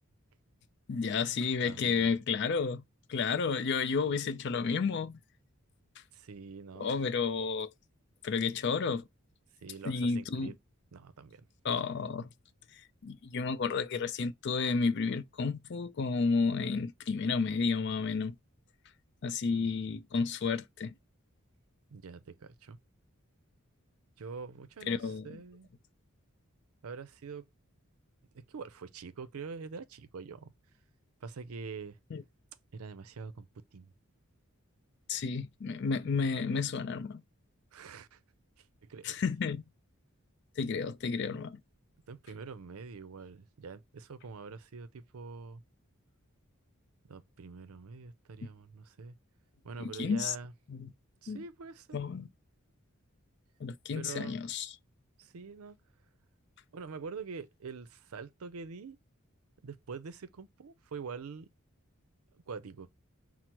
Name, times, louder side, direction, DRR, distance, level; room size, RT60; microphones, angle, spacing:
voice 1, 0.9-2.8 3.1-5.2 6.8-7.7 8.2-9.1 9.8-10.5 11.6-12.3 12.7-18.4 19.2-20.9 24.9-25.3 32.1-32.2 35.1-37.2 39.0-39.6 40.6-41.6 50.0-50.3 50.7-50.9 51.3-51.4 51.9-52.3 53.6-54.7, left 5 dB, 50° left, 0.4 m, -31 dB
voice 2, 1.6-2.2 6.1-6.9 9.6-10.5 10.9-11.4 19.5-20.0 21.9-22.8 24.2-25.7 26.8-27.5 28.5-30.5 31.2-32.0 32.7-33.9 37.7-38.2 38.9-39.1 42.1-45.6 47.1-49.2 49.6-50.5 51.2-51.9 53.9-54.4 55.2-55.8 56.7-59.0 59.6-61.5 62.3-62.9, right 5 dB, 80° right, 0.5 m, -45 dB
5.9 x 2.0 x 2.9 m
head